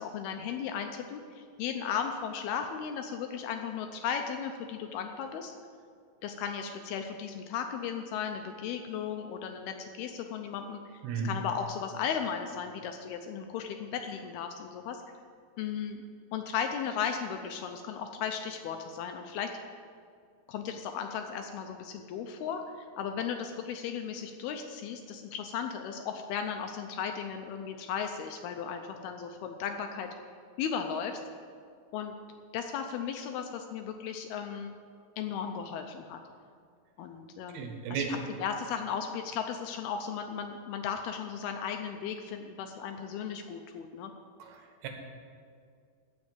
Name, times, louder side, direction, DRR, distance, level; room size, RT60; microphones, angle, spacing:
voice 1, 0.0-5.5 6.2-15.0 15.6-16.0 16.3-19.5 20.5-30.1 30.6-31.2 31.9-32.1 32.5-34.8 35.2-36.2 37.0-38.0 38.4-44.1, left 7 dB, 80° left, 5 dB, 2.4 m, -36 dB
voice 2, 37.5-38.2 44.4-44.9, right 5 dB, 75° right, 3 dB, 3.3 m, -34 dB
15.0 x 5.3 x 8.9 m, 2.2 s
omnidirectional pair, 4.9 m